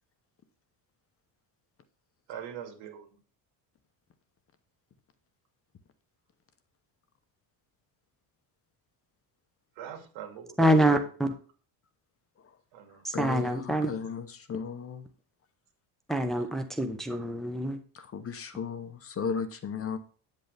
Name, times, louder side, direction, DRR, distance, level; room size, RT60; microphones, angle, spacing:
voice 1, 2.3-3.2 9.8-11.0 12.7-13.0, right 9 dB, 85° right, 4 dB, 2.7 m, -42 dB
voice 2, 10.6-11.3 13.0-13.9 16.1-17.8, right 1 dB, ahead, 5 dB, 0.8 m, -26 dB
voice 3, 13.1-15.1 17.9-20.0, left 6 dB, 30° left, 10 dB, 0.9 m, -35 dB
9.2 x 8.1 x 3.4 m, 0.39 s
cardioid pair, 160°, 45 cm